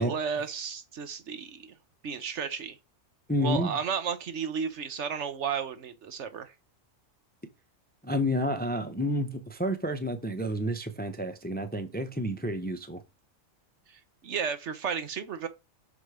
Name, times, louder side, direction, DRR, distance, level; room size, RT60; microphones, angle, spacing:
voice 1, 0.0-1.7 2.0-2.8 3.4-6.5 13.9-15.5, right 6 dB, 60° right, 1.1 m, -33 dB
voice 2, 3.3-3.7 8.0-13.0, equal, 10° left, 0.6 m, -30 dB
6.2 x 4.8 x 4.8 m
omnidirectional pair, 1.4 m